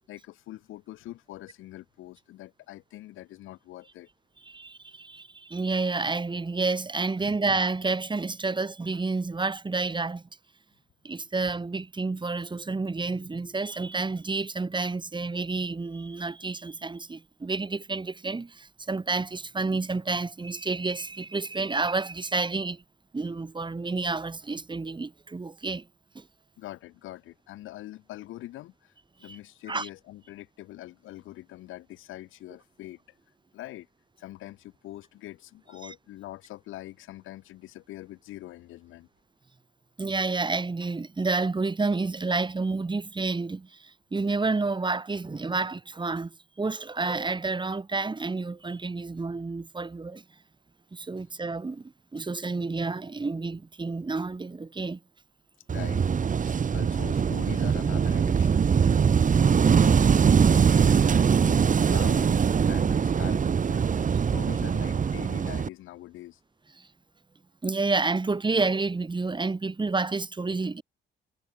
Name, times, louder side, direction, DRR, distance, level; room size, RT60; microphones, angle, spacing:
voice 1, 0.1-4.1 7.2-7.4 26.6-28.9 29.2-33.0 33.5-33.9 34.2-39.1 55.7-56.1 56.5-58.7 59.0-66.4, left 15 dB, 90° left, 3.7 m, -43 dB
voice 2, 4.5-10.2 11.0-22.8 23.1-25.9 26.2-26.3 29.3-29.4 29.7-29.9 35.8-35.9 40.0-50.2 50.9-55.0 66.8-66.9 67.6-70.8, right 3 dB, 25° right, 3.6 m, -30 dB
Wind / Waves surf, 55.7-65.7, right 6 dB, 40° right, 1.6 m, -22 dB
cardioid pair, 90°, 20 cm